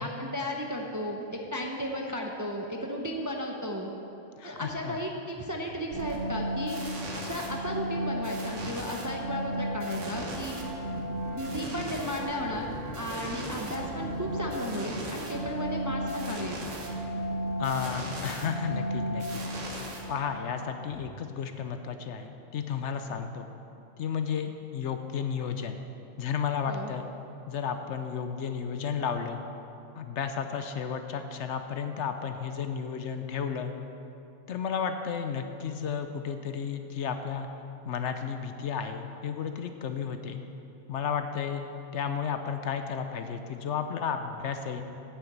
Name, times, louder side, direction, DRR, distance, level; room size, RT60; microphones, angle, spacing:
voice 1, 0.0-3.9 4.4-6.8 7.1-10.6 11.3-16.7 26.6-26.9, equal, 20° right, 0 dB, 0.6 m, -34 dB
voice 2, 4.4-5.0 17.6-19.4 20.1-23.5 24.0-25.8 26.2-27.0 27.5-29.4 30.0-33.7 34.5-37.5 37.8-40.4 40.9-41.6 41.9-44.8, left 7 dB, 70° left, 7 dB, 0.9 m, -33 dB
sound 1, 5.9-20.6, equal, 70° right, 1.6 m, -34 dB
9.1 x 7.0 x 7.9 m, 2.8 s
omnidirectional pair, 1.3 m